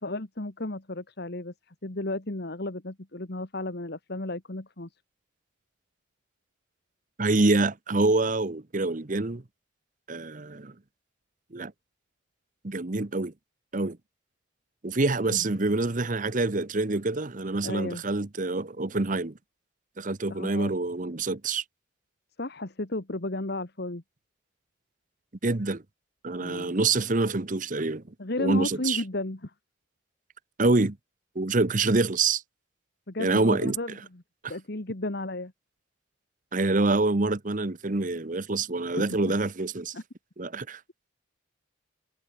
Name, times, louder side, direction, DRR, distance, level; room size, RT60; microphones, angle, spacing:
voice 1, 0.0-1.5 1.8-4.9 15.3-15.4 17.6-18.0 20.3-20.7 22.4-24.0 26.4-26.7 28.2-29.5 33.1-34.2 34.5-35.5 38.9-39.0 39.9-40.0, left 2 dB, 55° left, 1.7 m, -33 dB
voice 2, 7.2-9.4 10.1-10.7 11.5-11.7 12.6-13.3 13.7-14.0 14.8-19.3 20.0-21.6 25.4-25.8 26.2-28.0 28.4-29.0 30.6-31.0 31.3-32.4 33.2-33.8 36.5-39.9 40.4-40.8, right 3 dB, 40° right, 1.0 m, -26 dB
head